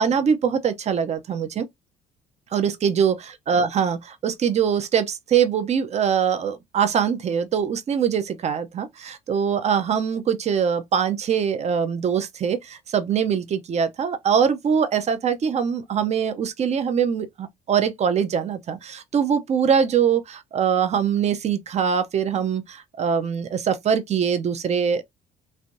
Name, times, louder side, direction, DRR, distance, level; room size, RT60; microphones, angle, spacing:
voice 1, 0.0-1.7 2.5-25.0, right 7 dB, 40° right, 0.6 m, -23 dB
3.3 x 2.6 x 2.6 m
cardioid pair, 110°, 17 cm